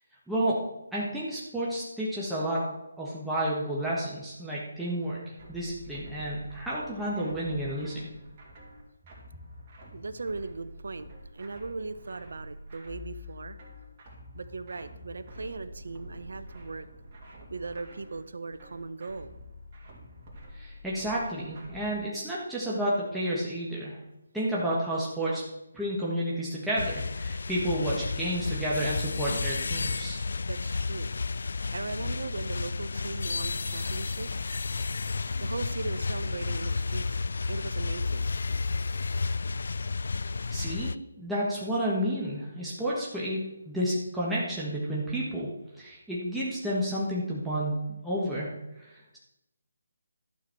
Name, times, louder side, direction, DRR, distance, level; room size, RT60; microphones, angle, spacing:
voice 1, 0.3-0.6 0.9-2.7 3.0-8.1 20.5-24.0 24.3-25.4 25.7-30.2 40.2-45.5 45.8-49.2, right 1 dB, ahead, -8 dB, 1.5 m, -31 dB
sound 1, 5.4-22.0, left 1 dB, 35° right, 2.7 m, -47 dB
voice 2, 9.9-13.6 14.3-16.9 17.5-19.3 30.5-31.1 31.7-34.3 35.4-38.3, right 3 dB, 70° right, 12 dB, 0.8 m, -38 dB
sound 2, 26.8-41.0, left 4 dB, 65° left, 0.3 m, -32 dB
12.0 x 6.8 x 4.6 m, 0.91 s
figure-of-eight pair, 155°, 0 cm